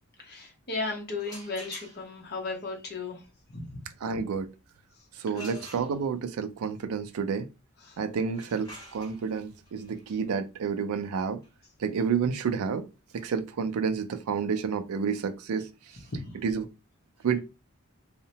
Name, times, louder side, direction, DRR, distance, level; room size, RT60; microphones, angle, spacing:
voice 1, 0.2-3.2 3.5-3.8 5.3-5.6 7.9-8.0 16.1-16.3, left 3 dB, 45° left, 0.8 m, -35 dB
sound 1, 1.1-2.3 5.3-6.4 8.2-13.9, equal, 15° left, 1.2 m, -50 dB
voice 2, 4.0-4.5 5.2-7.5 8.0-11.4 11.8-12.9 13.1-15.7 16.4-16.7 17.2-17.4, right 6 dB, 85° right, 0.4 m, -29 dB
2.8 x 2.1 x 2.7 m
head